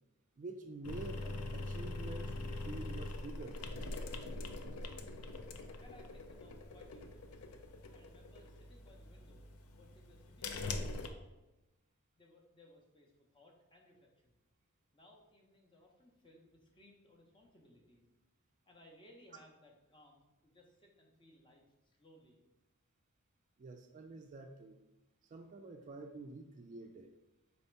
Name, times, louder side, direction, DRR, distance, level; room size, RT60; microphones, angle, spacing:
voice 1, 0.4-3.6 23.6-24.8 25.3-27.1, right 3 dB, 35° right, 5 dB, 0.3 m, -48 dB
sound 1, 0.8-11.1, left 2 dB, 80° left, 0.5 m, -43 dB
voice 2, 5.8-7.3 7.9-11.4 12.2-14.4 14.9-18.1 18.7-22.4, left 1 dB, 25° left, 0 dB, 0.7 m, -63 dB
4.1 x 2.8 x 4.4 m, 1.0 s
head